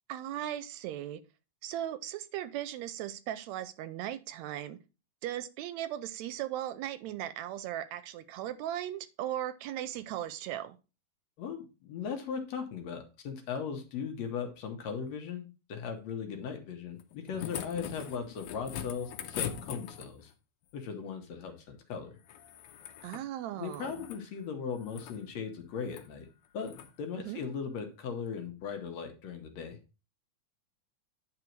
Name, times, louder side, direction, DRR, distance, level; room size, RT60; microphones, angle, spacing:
voice 1, 0.1-1.2 1.6-4.8 5.2-10.8 23.0-24.1 27.3-27.4, right 12 dB, 80° right, 14 dB, 1.8 m, -37 dB
voice 2, 11.4-20.3 20.7-22.2 23.6-26.3 26.5-29.8, left 6 dB, 70° left, 4 dB, 2.3 m, -38 dB
sound 1, 17.0-20.3 22.2-23.3 23.6-24.2 24.8-25.2 25.8-26.1 26.6-26.9 28.3-28.4, left 9 dB, 85° left, 2.1 m, -41 dB
9.9 x 4.0 x 4.5 m, 0.31 s
omnidirectional pair, 3.3 m